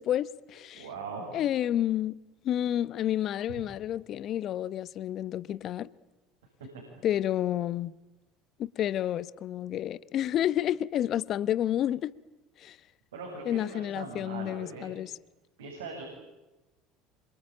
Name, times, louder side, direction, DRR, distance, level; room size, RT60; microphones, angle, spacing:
voice 1, 0.0-0.9 1.3-2.2 2.4-5.9 7.0-7.9 8.6-12.1 12.6-12.8 13.5-15.1, left 11 dB, 50° left, 1.0 m, -30 dB
voice 2, 0.7-1.4 6.7-6.8 13.1-14.9 15.6-16.0, right 4 dB, 80° right, 7.5 m, -40 dB
27.0 x 25.0 x 8.8 m
hypercardioid pair, 70°, 0 cm